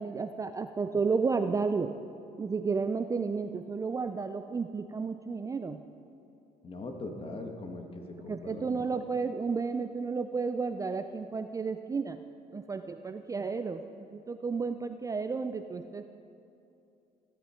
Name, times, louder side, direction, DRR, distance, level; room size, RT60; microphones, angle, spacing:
voice 1, 0.0-2.0 2.4-5.8 8.3-12.2 12.5-16.1, right 4 dB, 20° right, 8 dB, 0.4 m, -32 dB
voice 2, 6.6-8.9, left 2 dB, 35° left, 4 dB, 1.6 m, -41 dB
15.0 x 12.5 x 4.4 m, 2.7 s
cardioid pair, 110°, 17 cm